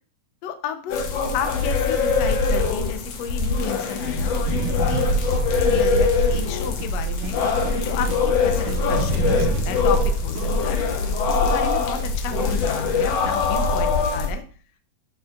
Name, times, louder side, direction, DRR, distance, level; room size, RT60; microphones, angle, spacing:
voice 1, 0.4-1.1 1.3-5.0 5.5-7.4 7.7-10.8 11.3-14.4, left 8 dB, 80° left, 7 dB, 1.5 m, -32 dB
sound 1, 0.9-14.3, left 3 dB, 65° left, 1.7 m, -22 dB
sound 2, 4.4-8.2 8.5-10.4, right 6 dB, 70° right, 2.1 m, -32 dB
13.5 x 7.1 x 2.5 m, 0.42 s
omnidirectional pair, 4.3 m